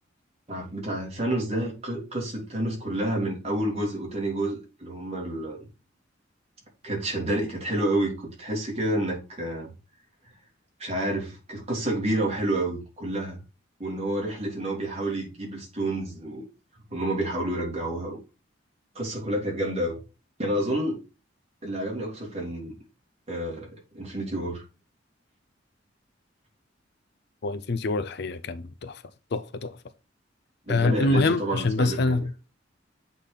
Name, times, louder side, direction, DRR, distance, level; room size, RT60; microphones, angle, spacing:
voice 1, 0.5-5.6 6.8-9.7 10.8-13.4 13.8-16.4 16.9-18.2 18.9-19.9 20.4-21.0 21.6-22.7 23.3-24.6 30.7-32.3, right 1 dB, 35° right, 2.9 m, -29 dB
voice 2, 27.4-29.0 29.3-29.8 30.7-32.3, left 3 dB, 60° left, 0.5 m, -25 dB
8.3 x 4.0 x 3.4 m
head